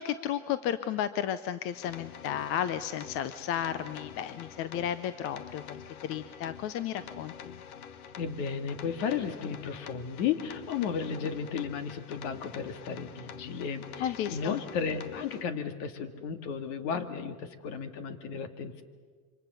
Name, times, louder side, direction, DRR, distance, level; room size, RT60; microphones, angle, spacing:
voice 1, 0.0-7.6 14.0-14.6, left 10 dB, 35° left, 13 dB, 0.7 m, -33 dB
sound 1, 1.7-15.4, left 8 dB, 90° left, 1.5 m, -46 dB
voice 2, 8.2-18.8, left 6 dB, 55° left, 9 dB, 2.2 m, -34 dB
27.0 x 25.0 x 6.9 m, 1.5 s
supercardioid pair, 155°, 42 cm